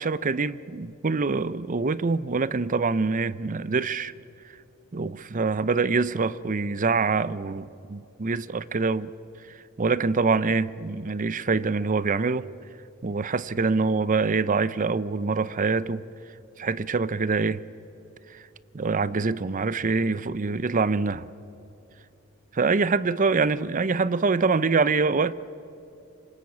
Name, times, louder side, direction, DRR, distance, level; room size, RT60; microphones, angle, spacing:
voice 1, 0.0-4.1 4.9-9.1 9.8-12.5 13.0-16.0 16.6-17.6 18.3-18.4 18.7-21.3 22.5-25.3, right 4 dB, 40° right, 0.6 m, -25 dB
26.0 x 23.0 x 8.5 m
head